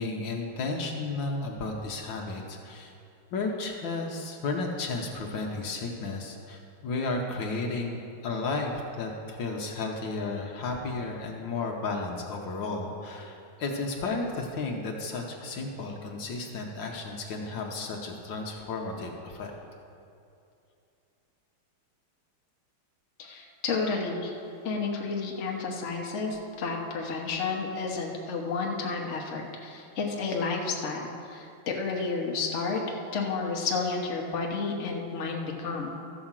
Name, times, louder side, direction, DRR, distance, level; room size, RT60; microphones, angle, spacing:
voice 1, 0.0-2.9 3.3-19.5, left 3 dB, 65° left, 1 dB, 1.6 m, -33 dB
voice 2, 23.2-24.3 24.6-36.0, left 4 dB, 40° left, 0 dB, 1.2 m, -31 dB
13.5 x 5.1 x 7.4 m, 2.6 s
omnidirectional pair, 2.3 m